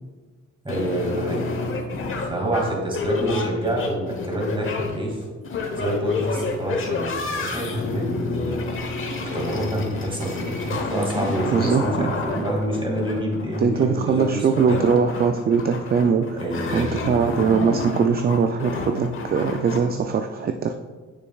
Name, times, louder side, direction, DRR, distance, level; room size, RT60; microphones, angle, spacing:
voice 1, 0.6-1.5 2.3-5.2 5.8-8.6 9.2-14.4 14.6-14.8 16.4-16.9, right 1 dB, 15° right, -1 dB, 2.2 m, -27 dB
sound 1, 0.7-19.8, left 3 dB, 45° left, 1.1 m, -30 dB
voice 2, 11.5-12.1 13.6-16.4 16.7-20.7, right 6 dB, 35° right, 7 dB, 0.4 m, -21 dB
9.3 x 6.5 x 2.3 m, 1.4 s
cardioid pair, 90°, 30 cm